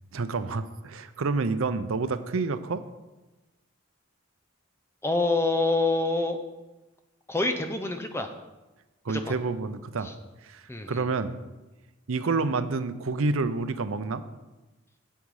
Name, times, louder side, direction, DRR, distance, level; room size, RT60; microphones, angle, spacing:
voice 1, 0.1-2.8 9.0-10.1 10.4-11.3 12.1-14.2, right 3 dB, 80° right, 12 dB, 0.6 m, -28 dB
voice 2, 5.0-6.4 7.3-8.3 9.1-9.3 10.0-10.1 10.7-11.1, left 2 dB, 10° left, 7 dB, 0.6 m, -26 dB
9.1 x 8.4 x 4.8 m, 1.1 s
head